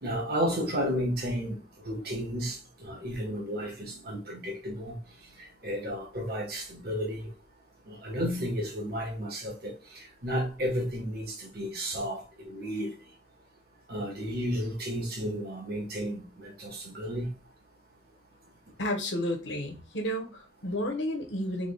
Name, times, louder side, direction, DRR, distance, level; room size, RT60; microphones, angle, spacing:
voice 1, 0.0-5.0 5.4-7.3 7.9-12.9 13.9-17.3, equal, 60° right, 1.3 m, -33 dB
voice 2, 18.8-21.7, left 1 dB, 80° left, 1.1 m, -32 dB
3.4 x 3.4 x 2.3 m
head